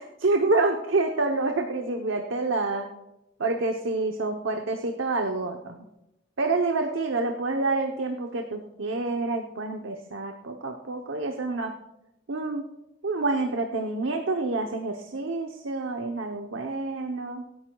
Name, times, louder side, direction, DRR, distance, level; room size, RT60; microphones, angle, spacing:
voice 1, 0.0-2.9 3.4-5.8 6.4-11.8 12.3-12.6 13.0-17.4, right 3 dB, 90° right, 3 dB, 0.9 m, -28 dB
24.5 x 10.5 x 2.4 m, 0.91 s
head